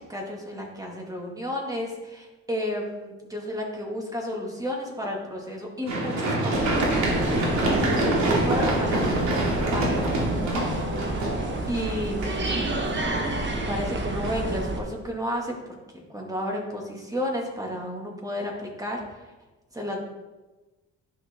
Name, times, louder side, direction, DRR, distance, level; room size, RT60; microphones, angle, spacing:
voice 1, 0.0-6.9 8.0-10.8 11.7-12.6 13.4-15.6 15.9-19.3 19.7-20.0, equal, 10° right, -1 dB, 2.2 m, -32 dB
Run, 5.9-13.8 14.2-14.3, right 1 dB, 70° right, 2.5 m, -26 dB
sound 1, 6.5-14.8, right 2 dB, 40° right, 1.4 m, -30 dB
11.0 x 5.9 x 3.7 m, 1.1 s
cardioid pair, 90°, 30 cm